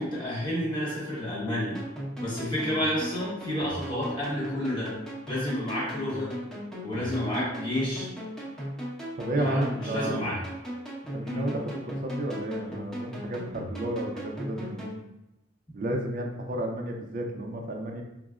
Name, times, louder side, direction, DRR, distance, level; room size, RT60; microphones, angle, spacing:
voice 1, 0.0-1.8 2.2-4.9 5.3-6.3 6.8-8.1 9.3-10.4 11.2-11.4, left 1 dB, 25° left, -6 dB, 1.0 m, -30 dB
sound 1, 1.7-15.0, equal, ahead, 0.8 m, -37 dB
voice 2, 9.2-10.3 11.1-15.0 15.7-18.0, right 1 dB, 45° right, 2 dB, 0.4 m, -32 dB
4.7 x 2.0 x 2.3 m, 0.89 s
head